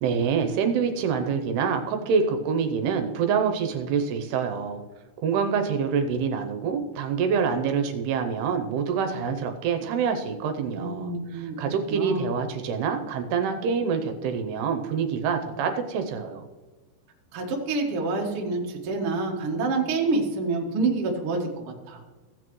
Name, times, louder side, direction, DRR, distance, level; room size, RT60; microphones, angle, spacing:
voice 1, 0.0-4.8 5.2-16.5, right 6 dB, 80° right, 6 dB, 2.6 m, -26 dB
voice 2, 10.7-11.6 11.9-12.2 17.3-22.0, right 3 dB, 60° right, 0 dB, 1.4 m, -27 dB
16.0 x 8.3 x 3.1 m, 1.3 s
omnidirectional pair, 4.9 m